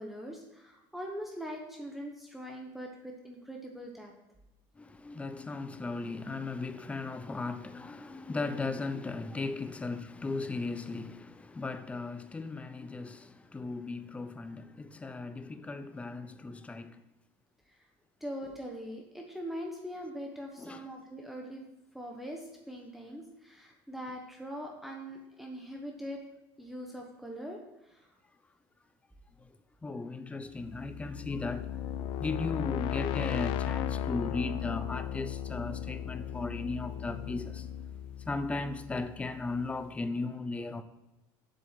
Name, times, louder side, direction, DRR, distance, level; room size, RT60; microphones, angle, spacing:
voice 1, 0.0-4.1 18.2-21.6 21.9-26.2 26.6-28.1, equal, ahead, 1.1 m, -42 dB
voice 2, 4.8-17.0 20.6-20.8 29.4-29.5 29.8-37.7 38.3-40.8, left 3 dB, 15° left, 0.6 m, -37 dB
sound 1, 30.6-39.4, left 10 dB, 65° left, 0.5 m, -36 dB
7.6 x 6.8 x 5.8 m
cardioid pair, 130°, 10 cm